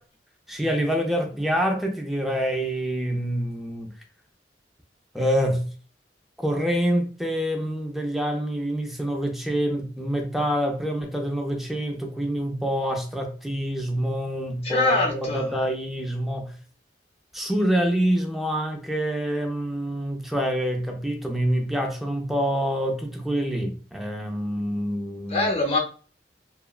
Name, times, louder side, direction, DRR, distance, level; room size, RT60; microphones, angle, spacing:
voice 1, 0.5-3.9 5.1-5.7 6.4-16.6 17.3-25.5, equal, ahead, 0.4 m, -26 dB
voice 2, 14.7-15.4 25.3-25.8, left 2 dB, 35° left, 0.7 m, -23 dB
2.9 x 2.2 x 2.3 m
head